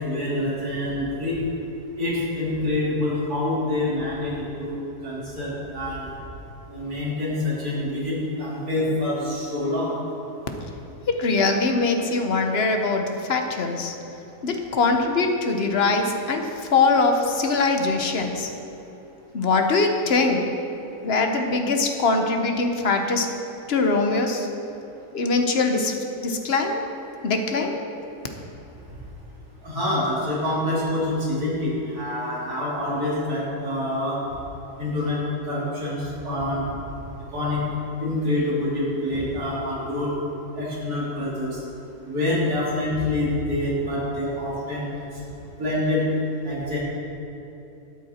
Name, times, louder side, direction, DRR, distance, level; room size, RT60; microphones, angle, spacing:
voice 1, 0.0-1.4 2.0-4.7 5.0-6.1 6.7-9.9 29.6-34.2 34.8-35.2 35.5-36.6 37.3-37.6 38.0-40.1 40.5-41.6 42.1-45.1 45.6-46.0 46.4-46.8, left 1 dB, 75° right, -7 dB, 3.4 m, -26 dB
voice 2, 11.1-14.0 14.4-18.5 19.3-20.4 21.0-23.3 23.7-24.5 25.1-26.9 27.2-27.8, left 3 dB, 45° left, 4 dB, 1.1 m, -22 dB
12.5 x 9.4 x 4.3 m, 2.9 s
omnidirectional pair, 1.6 m